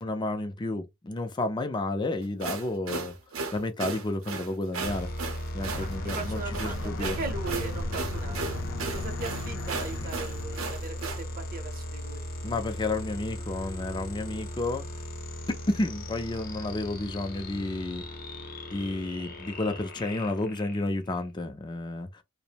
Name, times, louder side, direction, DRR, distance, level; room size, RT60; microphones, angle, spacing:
voice 1, 0.0-3.2 3.5-5.1 5.5-7.2 12.4-14.9 15.5-18.0 18.7-22.2, left 2 dB, 20° left, 0.4 m, -31 dB
sound 1, 2.2-11.2, right 4 dB, 85° right, 0.6 m, -36 dB
sound 2, 4.8-21.3, equal, 50° left, 0.8 m, -37 dB
Aircraft, 5.7-11.8, left 2 dB, 85° left, 0.5 m, -38 dB
voice 2, 6.0-8.6 8.9-12.2, right 3 dB, 45° right, 0.7 m, -38 dB
2.5 x 2.0 x 2.8 m
head